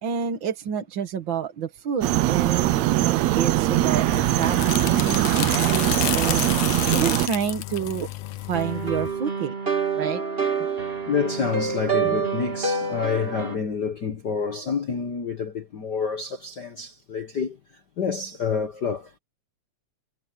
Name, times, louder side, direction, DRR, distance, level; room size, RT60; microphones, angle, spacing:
voice 1, 0.0-6.5 6.9-8.1 8.5-9.5 10.0-10.2 12.0-12.2, right 8 dB, 50° right, 1.8 m, -29 dB
sound 1, 2.0-7.3, right 15 dB, 75° right, 1.9 m, -21 dB
Crosscut paper shredder, 3.7-9.2, left 14 dB, 70° left, 1.6 m, -31 dB
sound 2, 8.5-13.6, right 5 dB, 20° right, 2.4 m, -27 dB
voice 2, 11.1-17.6 18.0-19.1, left 6 dB, 50° left, 1.3 m, -28 dB
omnidirectional pair, 3.4 m